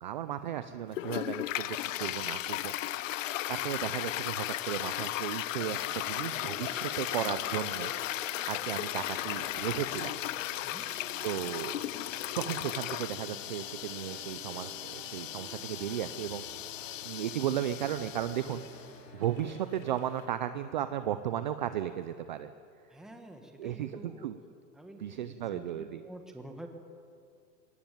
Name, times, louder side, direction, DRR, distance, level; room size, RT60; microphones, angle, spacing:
voice 1, 0.0-10.1 11.2-11.9 12.4-16.4 17.0-18.9 19.1-22.5 23.6-24.4 25.0-26.0, right 11 dB, 30° right, 12 dB, 0.4 m, -35 dB
Toilet flush, 0.9-18.8, left 14 dB, 50° left, 0.7 m, -36 dB
sound 1, 5.9-19.6, right 7 dB, 75° right, 5.0 m, -53 dB
sound 2, 8.9-20.3, left 4 dB, 80° left, 4.1 m, -55 dB
voice 2, 22.9-24.3 24.7-26.7, right 1 dB, ahead, 4 dB, 1.3 m, -48 dB
20.0 x 18.5 x 9.1 m, 2.4 s
hypercardioid pair, 155°, 49 cm